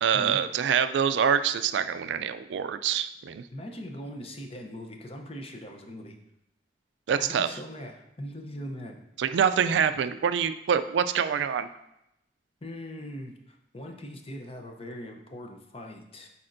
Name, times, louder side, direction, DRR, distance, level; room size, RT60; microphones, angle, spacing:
voice 1, 0.0-3.4 7.1-7.5 9.2-11.7, right 7 dB, 80° right, 12 dB, 0.3 m, -25 dB
voice 2, 3.5-6.1 7.2-9.0 12.6-16.3, equal, 35° left, 3 dB, 0.7 m, -40 dB
8.5 x 4.2 x 2.6 m, 0.83 s
head